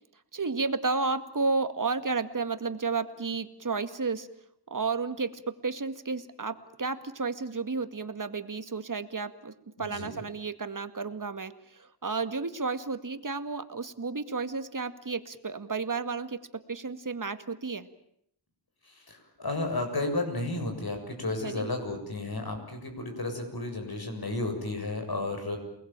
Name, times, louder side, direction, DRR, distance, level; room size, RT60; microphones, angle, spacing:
voice 1, 0.3-4.3 4.7-9.5 9.8-17.9 21.4-21.7, right 4 dB, 45° right, 10 dB, 2.1 m, -32 dB
voice 2, 9.8-10.1 18.9-25.6, left 2 dB, 55° left, 5 dB, 7.3 m, -33 dB
29.0 x 20.5 x 9.0 m, 0.74 s
wide cardioid pair, 60°, 43 cm